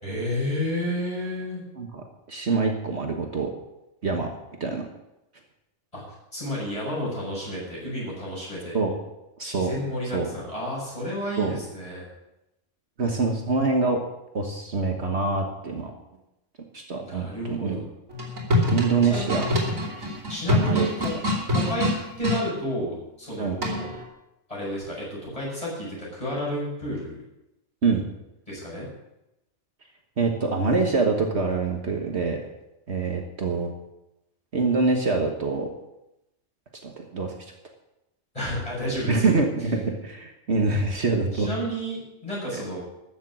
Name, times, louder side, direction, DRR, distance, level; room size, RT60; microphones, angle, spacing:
voice 1, 0.0-1.6 5.9-6.0 6.3-8.8 9.4-12.1 17.0-17.8 19.1-19.2 20.3-21.1 21.5-21.9 22.2-23.9 24.5-27.2 28.5-28.9 38.3-39.3 41.3-42.8, equal, 25° left, -5 dB, 6.6 m, -31 dB
voice 2, 1.8-3.5 4.0-4.3 4.6-4.8 8.7-8.9 9.4-9.7 10.1-10.3 11.4-11.6 13.0-14.0 14.3-15.9 16.7-17.9 18.7-19.4 20.6-20.9 23.4-23.6 27.8-28.0 30.2-32.4 32.9-33.7 34.5-35.7 36.8-37.3 39.1-41.5 42.5-42.6, right 4 dB, 55° right, 3 dB, 1.6 m, -25 dB
sound 1, 18.1-22.4 23.6-24.0, left 1 dB, 85° right, 3.2 m, -25 dB
13.5 x 7.4 x 7.4 m, 0.91 s
omnidirectional pair, 1.3 m